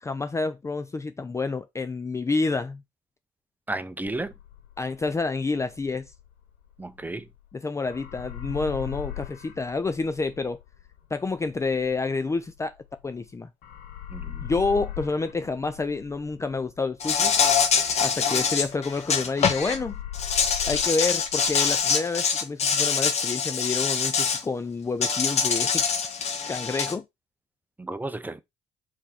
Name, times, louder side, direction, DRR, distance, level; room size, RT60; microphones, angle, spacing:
voice 1, 0.0-2.8 4.8-6.1 7.5-10.6 11.1-12.7 13.0-13.5 14.4-17.4 18.0-20.0 20.7-25.8 26.5-27.0, left 3 dB, 20° left, 0.5 m, -28 dB
voice 2, 3.7-4.3 6.8-7.3 14.1-14.5 27.8-28.4, right 2 dB, 10° right, 0.8 m, -33 dB
sound 1, 4.1-7.5 7.8-13.3 13.6-19.1 19.4-21.8, left 11 dB, 75° left, 1.2 m, -40 dB
Insect, 17.0-19.8 20.1-24.4 25.0-26.9, left 6 dB, 50° left, 1.4 m, -24 dB
4.5 x 4.3 x 5.8 m
supercardioid pair, 70°, 14 cm